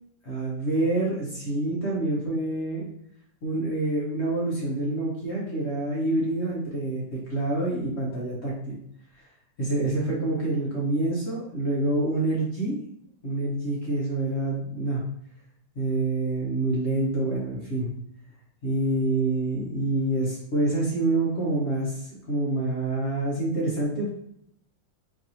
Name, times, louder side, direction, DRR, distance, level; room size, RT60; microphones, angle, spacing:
voice 1, 0.2-2.9 3.4-8.8 9.2-9.3 9.6-12.8 13.2-15.0 15.7-17.9 18.6-24.1, right 2 dB, 45° left, -5 dB, 0.9 m, -27 dB
4.6 x 2.6 x 2.8 m, 0.72 s
omnidirectional pair, 2.0 m